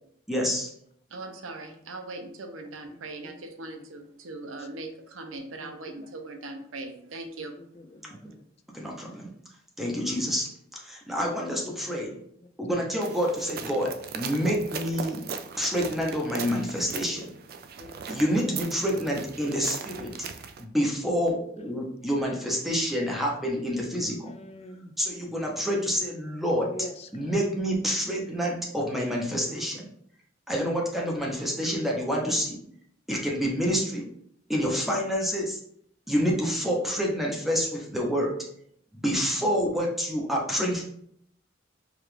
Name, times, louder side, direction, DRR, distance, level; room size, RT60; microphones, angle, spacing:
voice 1, 0.3-0.7 8.7-9.3 9.8-10.5 10.8-12.2 12.6-15.2 15.6-17.3 18.1-20.1 20.6-24.3 25.0-26.7 27.1-29.8 30.5-32.6 33.1-34.1 34.5-35.6 36.1-38.4 38.9-40.8, equal, ahead, -2 dB, 0.7 m, -28 dB
voice 2, 1.1-7.6, right 2 dB, 85° right, 5 dB, 0.6 m, -40 dB
voice 3, 7.6-8.4 11.4-12.0 13.3-13.4 16.8-17.0 17.8-18.6 24.2-24.9 26.7-27.3 29.4-29.7, left 2 dB, 30° left, 7 dB, 0.4 m, -45 dB
sound 1, 13.0-20.6, right 6 dB, 50° right, 0.3 m, -39 dB
4.8 x 2.4 x 3.2 m, 0.68 s
head